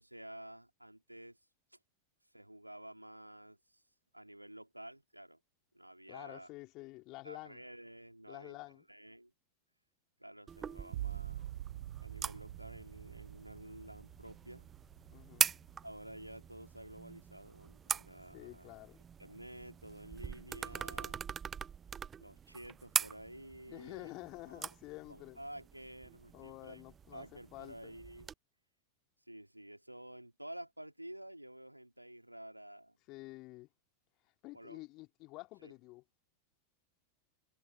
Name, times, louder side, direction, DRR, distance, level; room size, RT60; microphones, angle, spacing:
voice 1, 0.0-1.4 1.7-1.8 2.3-3.8 4.1-5.4 5.7-6.5 7.2-8.6 8.9-9.3 10.2-11.5 12.0-14.7 15.8-18.7 19.2-21.2 22.2-24.1 24.5-24.6 25.1-26.8 27.1-28.3 29.3-33.0 34.5-34.8 35.6-35.7, right 1 dB, 90° right, 3.4 m, -51 dB
voice 2, 6.1-7.6 8.3-8.8 15.1-15.5 18.3-19.0 23.7-25.4 26.3-27.9 33.1-33.7 34.4-36.0, left 21 dB, 40° left, 3.4 m, -49 dB
sound 1, 10.5-28.3, right 7 dB, 20° right, 0.6 m, -42 dB
sound 2, 10.9-16.4 16.8-17.4, right 13 dB, 55° right, 1.3 m, -46 dB
figure-of-eight pair, 90°, 0 cm